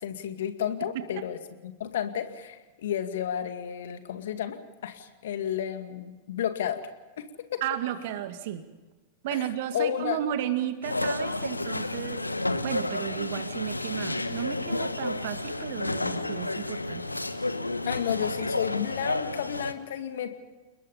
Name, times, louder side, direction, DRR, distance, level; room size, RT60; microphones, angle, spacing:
voice 1, 0.0-1.4 1.6-4.6 4.8-6.8 7.2-7.6 9.7-10.2 17.9-20.4, left 9 dB, 60° left, 8 dB, 2.2 m, -32 dB
voice 2, 0.8-1.3 7.6-8.6 9.2-12.2 12.6-17.0, right 11 dB, 50° right, 9 dB, 2.2 m, -33 dB
sound 1, 10.8-19.7, left 2 dB, 85° left, 1.2 m, -31 dB
30.0 x 21.0 x 5.5 m, 1.2 s
figure-of-eight pair, 90°, 0 cm